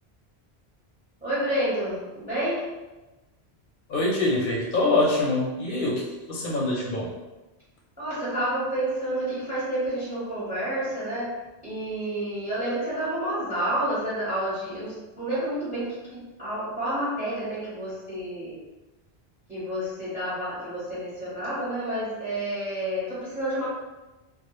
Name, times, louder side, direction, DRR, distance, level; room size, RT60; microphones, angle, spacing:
voice 1, 1.2-2.7 8.0-11.4 11.6-18.6 19.5-23.6, right 1 dB, 10° right, -10 dB, 0.8 m, -29 dB
voice 2, 3.9-7.1, left 2 dB, 60° left, -3 dB, 0.6 m, -24 dB
2.3 x 2.0 x 3.0 m, 1.1 s
omnidirectional pair, 1.1 m